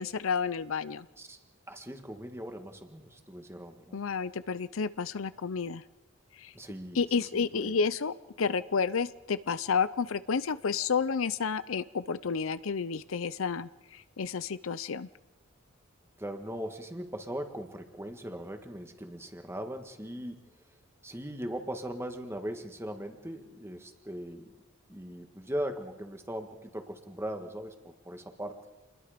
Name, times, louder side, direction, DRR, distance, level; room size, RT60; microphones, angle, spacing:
voice 1, 0.0-1.1 3.9-5.8 6.4-6.5 6.9-15.1, left 5 dB, 75° left, 15 dB, 0.6 m, -31 dB
voice 2, 1.7-4.0 6.5-7.0 7.3-7.8 16.2-20.4 21.0-24.5 24.9-28.6, equal, 10° right, 5 dB, 1.7 m, -39 dB
27.5 x 21.0 x 5.1 m, 1.1 s
head